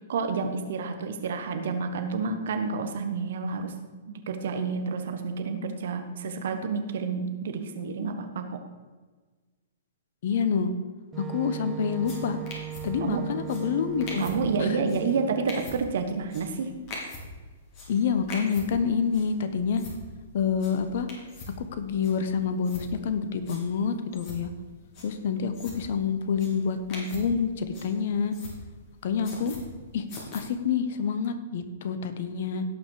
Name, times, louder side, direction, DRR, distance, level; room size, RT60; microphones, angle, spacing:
voice 1, 0.1-3.8 4.1-8.6 13.0-13.2 14.2-16.7, right 4 dB, 65° right, 7 dB, 1.4 m, -29 dB
voice 2, 10.2-10.7 11.3-12.4 12.8-14.2 14.6-14.8 17.9-19.8 20.3-21.1 21.7-24.5 25.0-28.3 29.0-29.5 29.9-30.0 30.3-32.6, left 6 dB, 60° left, 10 dB, 1.2 m, -27 dB
Wind instrument woodwind instrument, 11.1-15.8, right 13 dB, 25° right, 0.3 m, -38 dB
sound 1, 11.8-30.4, left 2 dB, 40° left, 3.4 m, -44 dB
17.0 x 5.7 x 4.9 m, 1.3 s
hypercardioid pair, 120°, 0 cm